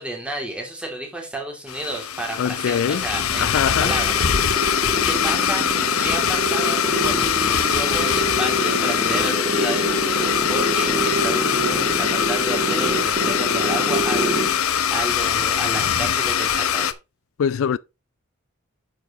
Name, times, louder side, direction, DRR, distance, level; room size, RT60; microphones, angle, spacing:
voice 1, 0.0-3.5 3.8-4.5 5.0-5.7 6.0-7.3 7.6-17.0, right 1 dB, 5° right, 2.8 m, -31 dB
Domestic sounds home sounds, 1.7-16.9, left 8 dB, 80° left, 0.8 m, -22 dB
voice 2, 2.4-3.1 3.4-4.0 17.4-17.8, left 7 dB, 65° left, 0.3 m, -22 dB
sound 1, 2.9-14.6, right 1 dB, 35° right, 1.8 m, -27 dB
9.0 x 7.1 x 3.1 m
head